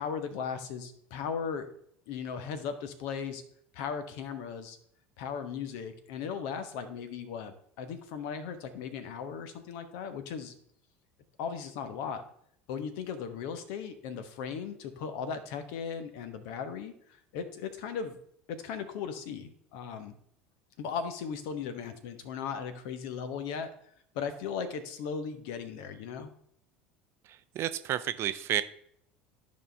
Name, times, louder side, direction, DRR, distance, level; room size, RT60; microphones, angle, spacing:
voice 1, 0.0-1.7 2.1-3.4 3.7-4.8 5.2-10.5 11.4-12.2 12.7-16.9 17.3-18.2 18.5-20.1 20.8-23.7 24.1-26.3, left 6 dB, 55° left, 9 dB, 1.1 m, -37 dB
voice 2, 27.5-28.6, right 12 dB, 45° right, 13 dB, 0.5 m, -30 dB
12.5 x 5.3 x 3.3 m, 0.67 s
figure-of-eight pair, 70°, 6 cm